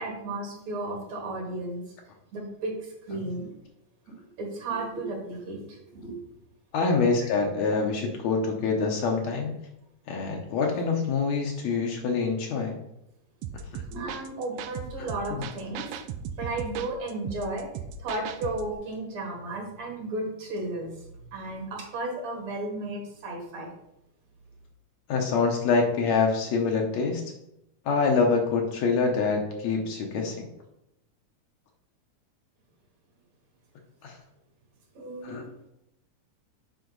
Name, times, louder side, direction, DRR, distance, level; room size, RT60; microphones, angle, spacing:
voice 1, 0.0-1.9 2.3-3.5 4.1-6.2 7.0-7.3 13.9-15.9 16.4-17.7 18.0-23.7 34.9-35.5, right 2 dB, 60° right, 1 dB, 2.6 m, -34 dB
voice 2, 6.7-9.5 10.1-12.7 13.7-13.8 15.4-15.5 25.1-27.2 27.9-30.5 34.0-34.2 35.2-35.4, left 4 dB, 70° left, 1 dB, 2.0 m, -25 dB
sound 1, 13.4-18.7, right 6 dB, 80° right, 1.6 m, -38 dB
7.9 x 5.7 x 3.9 m, 0.82 s
omnidirectional pair, 3.6 m